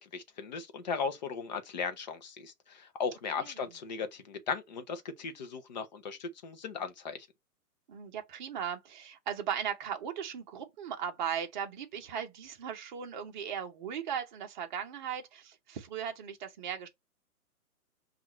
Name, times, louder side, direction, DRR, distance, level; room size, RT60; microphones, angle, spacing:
voice 1, 0.0-7.2, left 5 dB, 30° left, 0.6 m, -37 dB
voice 2, 3.4-3.8 7.9-16.9, right 8 dB, 30° right, 0.8 m, -37 dB
5.5 x 2.5 x 3.0 m
hypercardioid pair, 140°, 46 cm